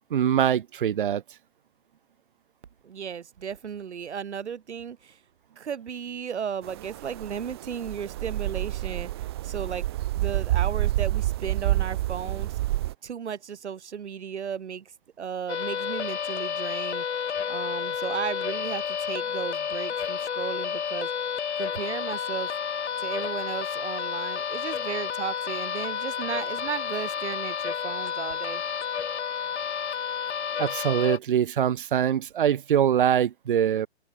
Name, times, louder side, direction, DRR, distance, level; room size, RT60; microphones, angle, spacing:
voice 1, 0.1-1.2 30.6-33.9, right 9 dB, 50° right, 2.2 m, -23 dB
voice 2, 2.8-5.2 5.6-9.9 10.1-12.5 13.0-14.9 15.2-17.0 17.5-21.1 21.6-22.5 23.0-28.6, right 7 dB, 85° right, 2.6 m, -35 dB
sound 1, 6.6-12.9, right 16 dB, 25° right, 1.2 m, -28 dB
sound 2, 15.5-31.2, left 7 dB, 80° left, 4.2 m, -31 dB
open air
hypercardioid pair, 175°, 33 cm